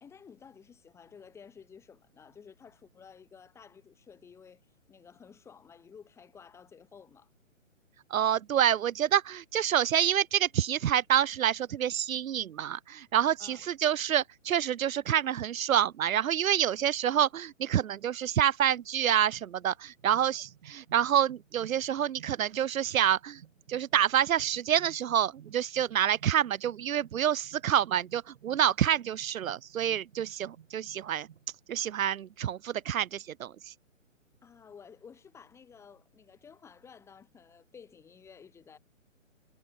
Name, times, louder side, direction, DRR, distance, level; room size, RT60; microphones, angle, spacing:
voice 1, 0.0-4.6 4.9-7.3 13.4-13.6 34.4-38.8, left 6 dB, 5° left, 1.5 m, -53 dB
voice 2, 8.1-23.4 23.7-31.3 31.7-33.5, right 10 dB, 85° right, 0.5 m, -27 dB
sound 1, 19.8-31.5, right 9 dB, 50° right, 3.3 m, -56 dB
hypercardioid pair, 145°, 40 cm